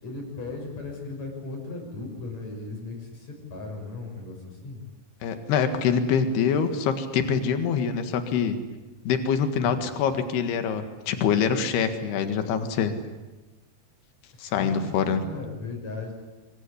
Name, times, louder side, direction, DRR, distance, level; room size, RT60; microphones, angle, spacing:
voice 1, 0.0-4.8 9.6-9.8 14.3-16.1, left 3 dB, 45° left, 2 dB, 7.6 m, -37 dB
voice 2, 5.2-8.6 9.1-12.9 14.4-15.2, left 7 dB, 85° left, 8 dB, 3.8 m, -25 dB
25.5 x 23.5 x 9.9 m, 1.2 s
omnidirectional pair, 4.5 m